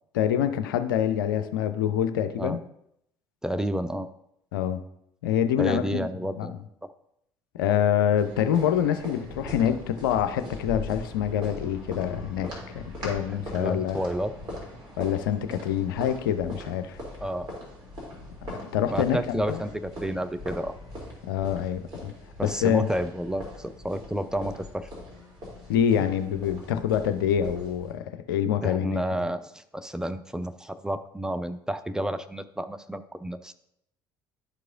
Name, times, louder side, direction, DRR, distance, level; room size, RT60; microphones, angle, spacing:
voice 1, 0.1-2.6 4.5-4.8 5.2-6.1 6.4-6.6 7.5-12.5 12.7-14.1 15.0-17.0 18.7-19.6 21.3-22.1 22.4-22.9 25.7-29.0, left 9 dB, 70° left, 10 dB, 0.5 m, -26 dB
voice 2, 3.4-4.1 5.6-6.6 6.8-6.9 13.3-14.3 17.2-17.5 18.9-20.8 22.4-24.9 28.6-33.5, right 1 dB, 5° right, 10 dB, 0.4 m, -31 dB
sound 1, 8.2-27.9, left 1 dB, 35° right, 2.8 m, -41 dB
11.5 x 4.7 x 2.5 m, 0.76 s
figure-of-eight pair, 55°, 12 cm